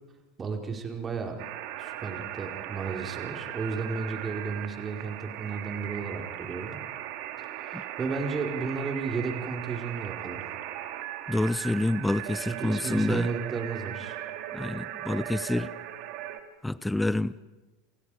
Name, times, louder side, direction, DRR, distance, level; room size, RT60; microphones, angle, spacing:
voice 1, 0.4-1.4 1.8-6.8 7.6-10.4 12.5-14.2, right 5 dB, 25° right, 2 dB, 4.8 m, -33 dB
sound 1, 1.4-16.4, right 12 dB, 55° right, 2.5 m, -38 dB
voice 2, 11.3-13.3 14.5-15.7 16.6-17.4, left 1 dB, 5° left, 17 dB, 0.8 m, -28 dB
28.5 x 28.0 x 5.1 m, 1.1 s
figure-of-eight pair, 80°, 0 cm